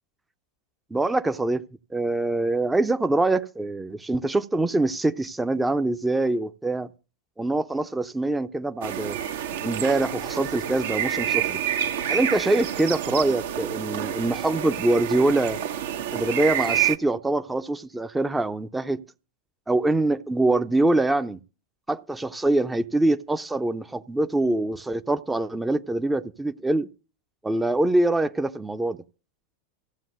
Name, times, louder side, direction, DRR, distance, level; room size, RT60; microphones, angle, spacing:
voice 1, 0.9-1.6 1.9-6.9 7.4-9.2 9.6-11.6 12.1-15.6 16.1-19.0 19.7-21.4 21.9-26.9 27.4-29.0, right 2 dB, 10° right, 0.7 m, -24 dB
sound 1, 8.8-17.0, right 10 dB, 60° right, 1.1 m, -28 dB
15.0 x 7.6 x 6.4 m
figure-of-eight pair, 90°, 0 cm